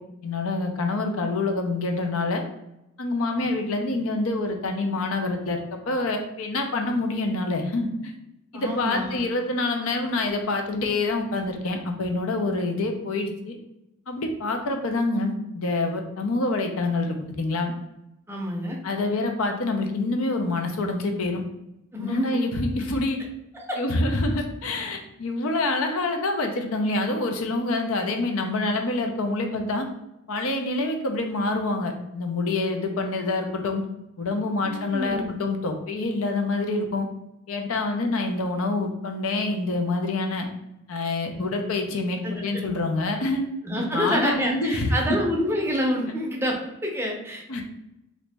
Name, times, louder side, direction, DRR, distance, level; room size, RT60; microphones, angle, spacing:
voice 1, 0.2-2.4 3.0-8.1 8.5-13.6 14.1-17.7 18.8-21.4 22.0-23.2 23.8-29.9 30.3-33.8 34.2-37.1 37.5-40.5 40.9-43.4 43.9-44.9 47.5-47.6, left 2 dB, 80° left, 4 dB, 0.6 m, -26 dB
voice 2, 8.5-9.2 18.3-18.8 21.9-22.4 23.5-23.8 34.6-35.4 41.3-41.4 42.2-42.6 43.6-47.6, equal, 10° right, -1 dB, 0.5 m, -28 dB
3.0 x 2.7 x 3.3 m, 0.88 s
head